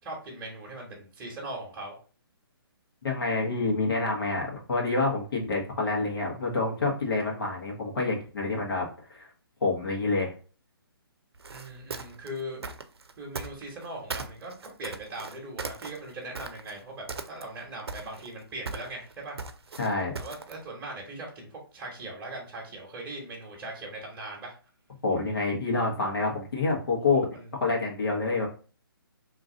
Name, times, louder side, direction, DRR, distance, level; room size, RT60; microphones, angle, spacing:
voice 1, 0.0-2.0 11.5-12.6 13.2-19.4 20.1-24.5 27.1-27.5, right 1 dB, 15° right, -4 dB, 1.1 m, -40 dB
voice 2, 3.0-9.3 9.6-10.3 19.8-20.1 25.0-27.3 27.6-28.5, left 3 dB, 65° left, -1 dB, 1.4 m, -27 dB
sound 1, 11.4-13.9 14.1-16.8 17.1-17.6 17.9-20.6, right 4 dB, 90° right, 0.5 m, -38 dB
3.0 x 2.6 x 3.7 m, 0.37 s
hypercardioid pair, 155°, 13 cm